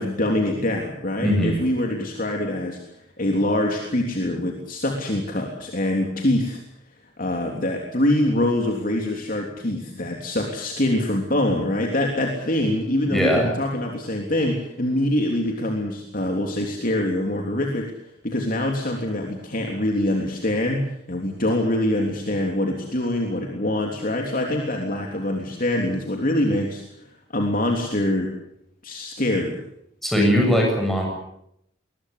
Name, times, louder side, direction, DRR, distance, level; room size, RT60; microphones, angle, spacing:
voice 1, 0.0-2.8 3.2-6.6 7.2-17.9 18.2-26.8 27.3-28.3 28.8-29.6, left 1 dB, 50° left, 1 dB, 3.3 m, -24 dB
voice 2, 1.2-1.5 13.1-13.5 30.0-31.1, equal, ahead, 0 dB, 7.2 m, -20 dB
22.0 x 21.0 x 8.4 m, 0.76 s
head